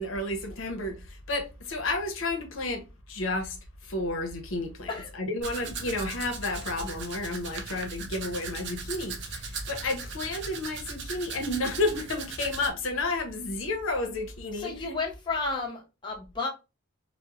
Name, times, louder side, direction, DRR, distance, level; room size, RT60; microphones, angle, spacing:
voice 1, 0.0-3.6 3.8-14.9, left 2 dB, 70° left, 0.6 m, -31 dB
Domestic sounds home sounds, 5.4-12.7, right 4 dB, 60° right, 0.5 m, -38 dB
voice 2, 14.5-16.5, left 3 dB, 25° left, 0.6 m, -32 dB
2.9 x 2.0 x 2.3 m
head